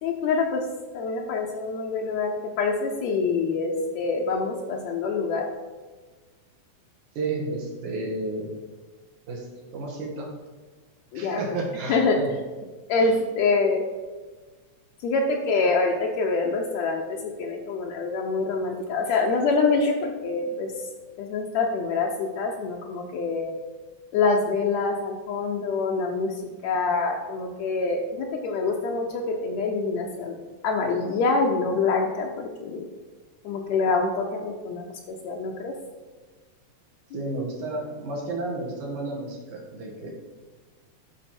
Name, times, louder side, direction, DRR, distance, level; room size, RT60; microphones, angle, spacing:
voice 1, 0.0-0.7 0.9-5.5 11.1-11.4 11.9-12.2 12.9-13.8 15.0-20.7 21.2-23.5 24.1-26.3 26.6-30.4 30.6-32.9 33.5-35.8 37.1-37.2, left 4 dB, 75° left, 0 dB, 1.8 m, -25 dB
voice 2, 7.2-8.5 9.3-9.5 9.7-10.3 11.1-12.3 13.0-13.2 20.4-20.5 37.1-40.1, right 2 dB, 80° right, -2 dB, 2.9 m, -32 dB
12.5 x 4.6 x 4.3 m, 1.4 s
omnidirectional pair, 3.4 m